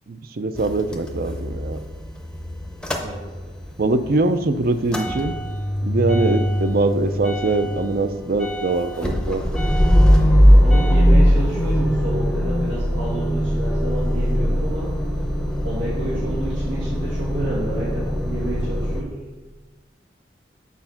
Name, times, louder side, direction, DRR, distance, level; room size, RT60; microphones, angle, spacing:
voice 1, 0.1-1.8 3.8-5.4 5.8-9.4 16.2-16.3, right 2 dB, 50° right, 10 dB, 0.5 m, -22 dB
Motor vehicle (road) / Engine starting / Idling, 0.6-3.7 4.0-19.0, equal, 5° left, 0.6 m, -20 dB
voice 2, 10.5-14.9 15.6-19.2, right 1 dB, 85° right, -8 dB, 1.8 m, -30 dB
8.3 x 4.3 x 5.8 m, 1.3 s
head